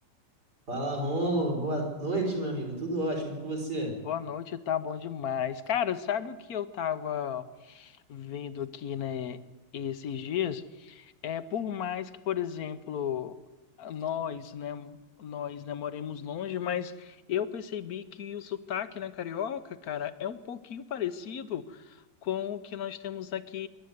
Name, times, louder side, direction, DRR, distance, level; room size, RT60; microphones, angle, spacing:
voice 1, 0.7-4.0, right 1 dB, 65° right, 1 dB, 5.5 m, -30 dB
voice 2, 4.0-9.4 9.7-13.3 13.8-23.7, left 9 dB, 60° left, 13 dB, 1.3 m, -34 dB
25.5 x 12.0 x 9.5 m, 1.1 s
omnidirectional pair, 1.9 m